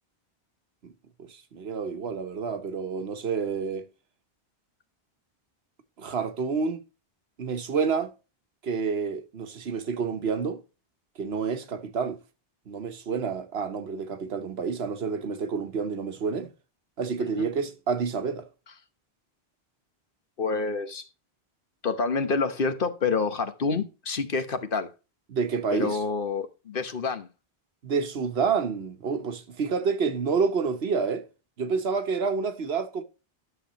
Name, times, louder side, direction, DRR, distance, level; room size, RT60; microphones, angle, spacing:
voice 1, 1.2-3.9 6.0-6.8 7.4-8.1 8.6-10.6 11.2-12.2 12.7-16.5 17.0-18.5 25.3-26.0 27.8-31.2 31.6-33.0, right 5 dB, 80° right, 1.3 m, -28 dB
voice 2, 20.4-21.1 21.8-24.9 25.7-27.3, left 4 dB, 60° left, 1.2 m, -28 dB
11.0 x 6.9 x 3.0 m
omnidirectional pair, 1.0 m